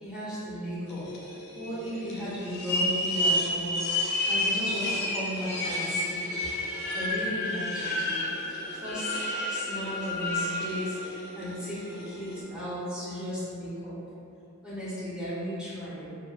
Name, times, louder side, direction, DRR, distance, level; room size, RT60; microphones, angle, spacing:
voice 1, 0.0-6.3 6.9-13.9 14.6-16.1, equal, 5° right, -11 dB, 0.6 m, -36 dB
sound 1, 0.9-12.4, left 1 dB, 50° left, 0.4 m, -31 dB
2.3 x 2.2 x 2.3 m, 2.6 s
head